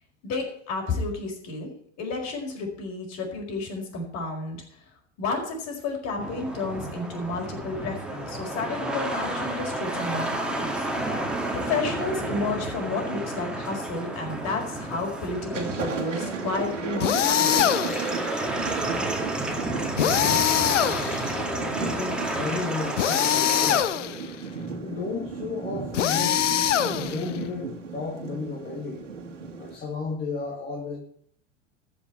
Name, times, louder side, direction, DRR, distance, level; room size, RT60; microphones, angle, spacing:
voice 1, 0.2-1.7 2.0-4.6 5.2-10.7 11.5-17.7, left 3 dB, 45° left, 1 dB, 5.0 m, -31 dB
sound 1, 6.2-23.8, right 1 dB, ahead, 2.2 m, -31 dB
Thunder, 14.6-15.0 15.3-29.8, right 5 dB, 80° right, 2.1 m, -35 dB
sound 2, 17.0-18.1 20.0-21.4 23.0-24.3 25.9-27.4, left 10 dB, 75° left, 0.8 m, -23 dB
voice 2, 19.7-20.5 21.0-24.0 24.8-26.6 26.9-29.0 29.6-31.0, left 4 dB, 25° left, -1 dB, 2.2 m, -34 dB
14.0 x 5.7 x 8.5 m, 0.65 s
figure-of-eight pair, 85°, 37 cm